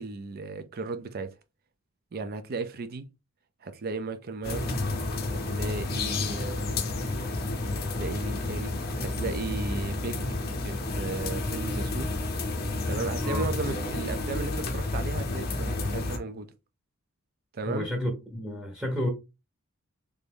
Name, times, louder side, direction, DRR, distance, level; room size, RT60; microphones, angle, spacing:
voice 1, 0.0-1.4 2.1-3.0 3.6-4.8 5.3-6.8 8.0-10.2 10.6-12.1 12.8-16.5 17.5-17.9, right 3 dB, 45° right, 0.4 m, -35 dB
sound 1, 4.4-16.2, left 2 dB, 45° left, 0.7 m, -30 dB
voice 2, 17.7-19.1, left 1 dB, 5° right, 0.8 m, -31 dB
3.3 x 2.6 x 3.5 m
head